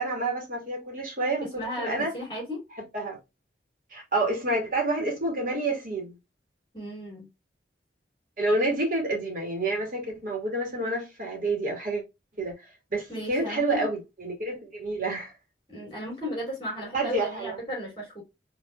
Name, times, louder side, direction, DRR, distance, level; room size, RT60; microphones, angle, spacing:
voice 1, 0.0-2.1 2.9-3.2 3.9-6.2 8.4-12.0 12.4-15.3 16.9-17.6, right 2 dB, 50° right, 2.3 m, -29 dB
voice 2, 1.5-2.6 6.7-7.3 13.1-13.9 15.7-18.2, equal, 25° left, 3.0 m, -35 dB
5.4 x 3.6 x 2.3 m
head